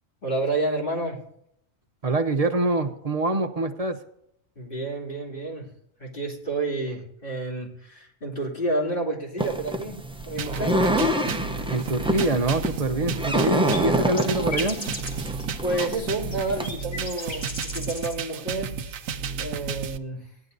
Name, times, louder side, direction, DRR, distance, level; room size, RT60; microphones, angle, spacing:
voice 1, 0.2-1.2 4.6-5.7 6.0-10.8 15.6-18.8 19.4-20.3, right 2 dB, 40° left, -4 dB, 3.1 m, -30 dB
voice 2, 2.0-4.0 11.7-14.8, right 2 dB, 35° right, 7 dB, 0.7 m, -25 dB
sound 1, 9.4-16.8, right 1 dB, 10° right, 0.3 m, -27 dB
sound 2, 10.4-20.0, right 6 dB, 75° right, 1.1 m, -33 dB
sound 3, 12.9-18.2 18.5-19.1, left 2 dB, 75° left, 2.8 m, -38 dB
17.5 x 11.0 x 2.6 m, 0.74 s
omnidirectional pair, 1.4 m